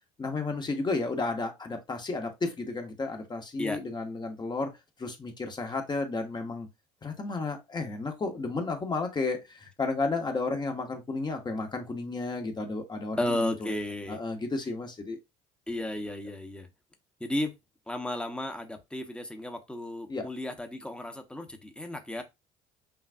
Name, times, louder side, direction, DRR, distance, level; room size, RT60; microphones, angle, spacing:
voice 1, 0.2-6.7 7.0-13.7 14.1-15.2 20.1-20.3, left 3 dB, 25° left, 1.1 m, -32 dB
voice 2, 13.2-14.2 15.7-16.7 17.2-17.5 17.9-22.2, left 1 dB, 5° left, 1.0 m, -33 dB
5.8 x 2.4 x 2.6 m
supercardioid pair, 75°, 17 cm